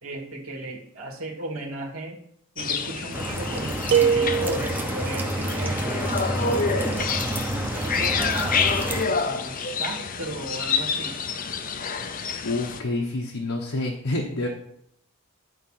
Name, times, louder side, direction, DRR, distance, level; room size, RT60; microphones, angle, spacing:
voice 1, 0.0-2.2 2.6-7.4 7.7-8.6 9.1-11.2, right 2 dB, 70° right, 0 dB, 2.0 m, -36 dB
sound 1, 2.6-12.8, left 5 dB, 40° left, 0.6 m, -28 dB
sound 2, 3.1-9.1, right 1 dB, 10° right, 0.8 m, -29 dB
sound 3, 3.9-5.1, right 7 dB, 50° right, 0.7 m, -22 dB
voice 2, 12.4-14.5, left 2 dB, 75° left, -1 dB, 1.2 m, -28 dB
11.0 x 4.9 x 5.8 m, 0.70 s
head